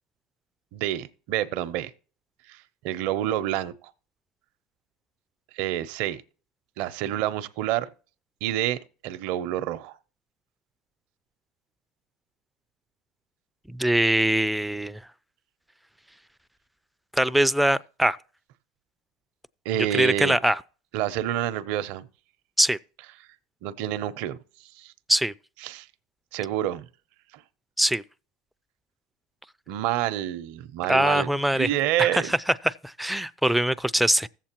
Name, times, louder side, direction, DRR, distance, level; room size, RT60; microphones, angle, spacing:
voice 1, 0.7-1.9 2.5-3.9 5.5-6.2 6.8-7.9 8.4-10.0 19.6-20.4 20.9-22.0 23.6-24.9 25.6-25.9 26.3-26.9 27.3-27.4 29.7-32.3, right 12 dB, 65° right, 0.6 m, -28 dB
voice 2, 13.7-15.0 17.1-18.2 19.9-20.6 22.6-22.8 25.1-25.3 27.8-28.0 30.9-31.7 32.0-32.4 32.6-34.3, right 1 dB, ahead, 0.3 m, -22 dB
16.5 x 7.4 x 2.9 m
supercardioid pair, 95°, 3 cm